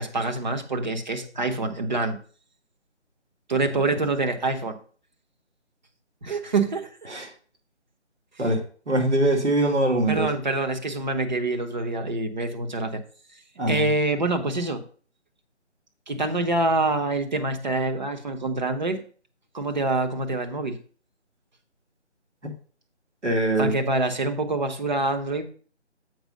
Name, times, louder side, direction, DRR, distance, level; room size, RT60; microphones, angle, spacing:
voice 1, 0.0-2.2 3.5-4.8 6.2-6.9 10.1-13.0 13.7-14.8 16.1-19.0 19.5-20.8 23.6-25.5, right 2 dB, 40° right, 5 dB, 1.1 m, -26 dB
voice 2, 8.9-10.3 13.6-13.9 22.4-22.5 23.2-23.7, right 1 dB, 75° right, 1 dB, 2.4 m, -22 dB
7.9 x 5.0 x 5.2 m, 0.42 s
figure-of-eight pair, 155°, 35 cm